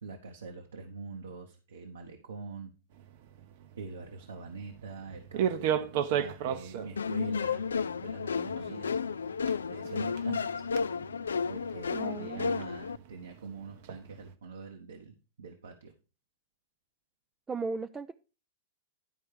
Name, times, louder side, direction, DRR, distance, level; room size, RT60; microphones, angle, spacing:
voice 1, 0.0-2.7 3.8-9.0 9.7-10.6 11.5-15.9, right 4 dB, 75° right, 3 dB, 1.1 m, -44 dB
sound 1, 2.9-14.3, right 9 dB, 50° right, 0.8 m, -37 dB
sound 2, 7.0-13.0, left 5 dB, 75° left, 0.3 m, -32 dB
voice 2, 11.9-12.7 17.5-18.1, right 4 dB, 15° right, 10 dB, 0.4 m, -37 dB
11.0 x 4.5 x 4.9 m, 0.33 s
figure-of-eight pair, 100°, 0 cm